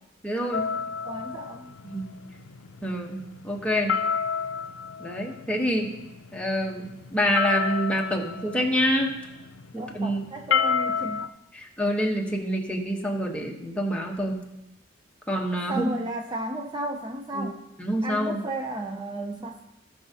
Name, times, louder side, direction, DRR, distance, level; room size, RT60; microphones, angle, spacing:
voice 1, 0.2-0.7 1.8-2.1 2.8-4.0 5.0-5.9 6.3-9.1 9.7-10.2 11.5-14.4 15.3-15.9 17.3-17.5 17.8-18.4, equal, 5° left, -1 dB, 1.1 m, -27 dB
sound 1, 0.5-11.3, left 6 dB, 85° left, 0.4 m, -31 dB
voice 2, 1.0-1.7 9.7-11.3 15.7-17.6 18.0-19.6, right 1 dB, 25° right, 3 dB, 0.5 m, -33 dB
17.5 x 6.1 x 2.8 m, 0.91 s
head